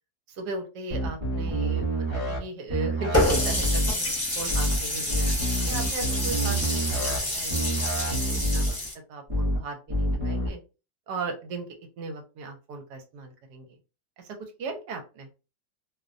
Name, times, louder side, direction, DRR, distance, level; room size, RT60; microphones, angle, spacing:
voice 1, 0.3-5.3 5.7-8.8 9.1-10.6 11.1-11.7 12.0-13.7 14.2-15.0, right 3 dB, 80° right, 4 dB, 1.2 m, -37 dB
sound 1, 0.9-2.4 2.7-3.9 4.5-4.8 5.1-7.2 7.5-8.7 9.3-9.6 9.9-10.5, right 1 dB, 35° right, 0.5 m, -27 dB
Water tap faucet, 3.1-8.9, left 1 dB, 25° left, 0.3 m, -28 dB
2.7 x 2.1 x 2.4 m, 0.31 s
omnidirectional pair, 1.8 m